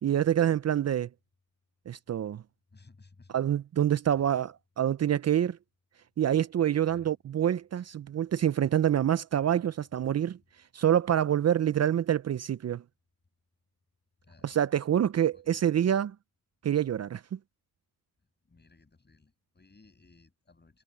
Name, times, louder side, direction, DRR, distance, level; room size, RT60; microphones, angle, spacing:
voice 1, 0.0-1.1 1.9-2.4 3.3-5.6 6.2-10.4 10.7-12.8 14.4-16.1 16.6-17.4, right 10 dB, 45° right, 0.6 m, -26 dB
voice 2, 2.7-3.4 4.2-4.3 6.9-7.1 14.2-14.6 15.3-15.6 18.4-20.8, left 3 dB, 30° left, 6.9 m, -58 dB
supercardioid pair, 65°, 35 cm